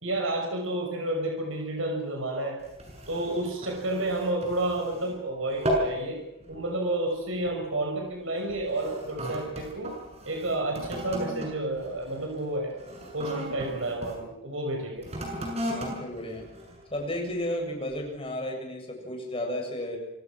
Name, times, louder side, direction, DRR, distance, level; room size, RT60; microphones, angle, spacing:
voice 1, 0.0-2.6 3.1-6.2 6.5-10.0 10.3-12.7 13.1-15.1, right 1 dB, 85° right, 2 dB, 6.0 m, -30 dB
sound 1, 2.6-5.2 5.5-6.0 6.4-6.7 7.4-7.6 8.4-14.2 15.0-17.3 17.9-18.0, equal, 30° right, 7.5 m, -36 dB
voice 2, 15.7-16.5 16.9-20.0, left 1 dB, 30° left, 2 dB, 7.4 m, -33 dB
28.0 x 25.5 x 6.3 m, 0.86 s
head